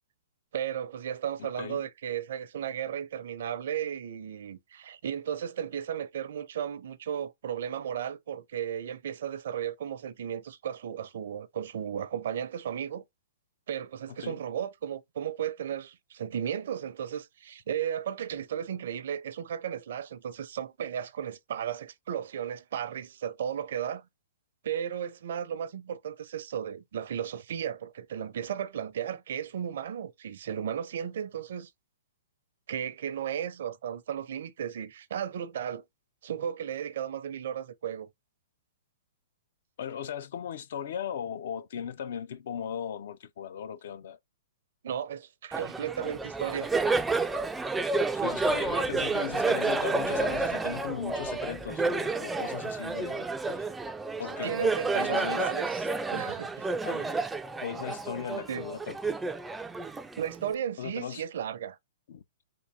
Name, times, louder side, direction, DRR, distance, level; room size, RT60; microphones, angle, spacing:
voice 1, 0.5-13.0 13.7-24.1 24.6-31.7 32.7-35.8 36.2-38.1 44.8-46.7 54.4-56.7 58.5-58.7 60.2-61.8, right 9 dB, 65° right, 0.6 m, -35 dB
voice 2, 1.4-1.8 14.2-14.4 39.8-44.2 48.1-53.3 54.2-55.5 56.8-57.3 57.6-59.2 60.8-61.2 62.1-62.2, left 8 dB, 65° left, 0.5 m, -37 dB
Laughter, 45.5-60.5, right 3 dB, 5° right, 0.3 m, -30 dB
3.8 x 2.6 x 3.1 m
hypercardioid pair, 145°, 0 cm